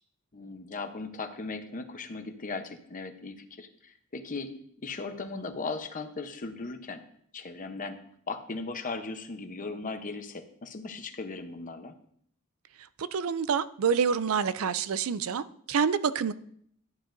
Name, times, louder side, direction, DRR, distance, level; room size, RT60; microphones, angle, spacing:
voice 1, 0.3-4.5 4.8-7.0 7.3-8.0 8.3-11.9, left 3 dB, 40° left, 0.9 m, -37 dB
voice 2, 13.0-16.3, right 6 dB, 70° right, 0.4 m, -27 dB
11.5 x 9.6 x 2.6 m
head